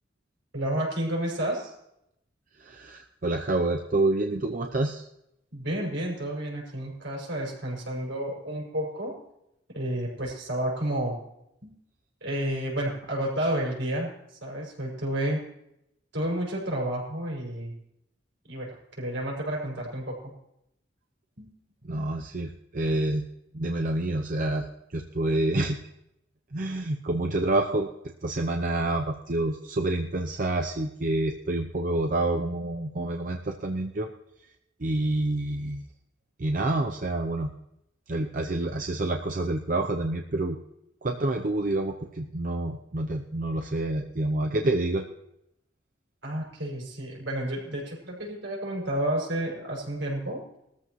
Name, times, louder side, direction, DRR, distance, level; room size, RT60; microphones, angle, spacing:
voice 1, 0.5-1.7 5.5-9.1 9.7-11.2 11.6-11.7 12.2-14.1 14.4-15.4 16.1-17.7 18.4-20.3 21.4-21.5 46.2-50.4, right 1 dB, 80° right, -3 dB, 5.7 m, -31 dB
voice 2, 2.6-5.0 21.8-23.2 23.5-24.7 24.9-25.8 26.5-27.9 28.2-34.1 34.8-35.8 36.4-37.5 38.1-40.6 41.0-45.1, right 2 dB, 45° right, 3 dB, 0.7 m, -28 dB
20.0 x 14.0 x 3.1 m, 0.81 s
head